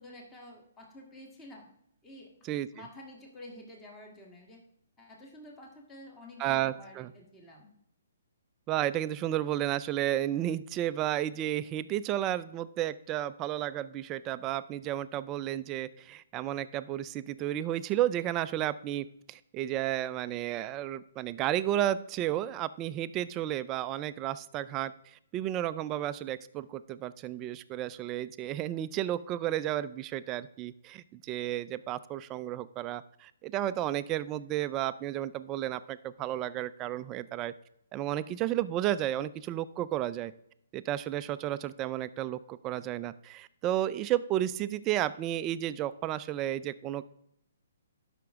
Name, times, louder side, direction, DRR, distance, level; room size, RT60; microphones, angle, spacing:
voice 1, 0.0-1.7 2.0-4.6 5.0-7.7, left 1 dB, 10° left, 0 dB, 1.6 m, -50 dB
voice 2, 6.4-7.1 8.7-37.5 37.9-40.3 40.7-47.0, right 12 dB, 20° right, 14 dB, 0.3 m, -32 dB
12.5 x 5.8 x 3.5 m, 0.73 s
hypercardioid pair, 165°, 0 cm